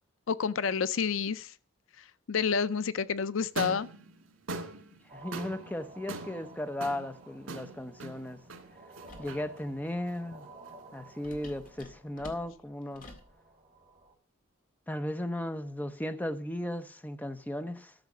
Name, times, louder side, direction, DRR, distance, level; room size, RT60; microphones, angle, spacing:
voice 1, 0.3-1.5 2.0-3.9, left 6 dB, 70° left, 0.5 m, -29 dB
sound 1, 3.4-11.7, right 2 dB, 90° right, 2.0 m, -43 dB
voice 2, 5.1-8.4 9.2-10.5 10.9-13.1 14.9-17.9, left 1 dB, 10° left, 0.7 m, -36 dB
sound 2, 5.1-14.1, right 3 dB, 25° right, 4.8 m, -54 dB
sound 3, 9.1-9.4 11.2-13.3, left 1 dB, 40° left, 1.9 m, -49 dB
13.0 x 6.6 x 6.1 m
head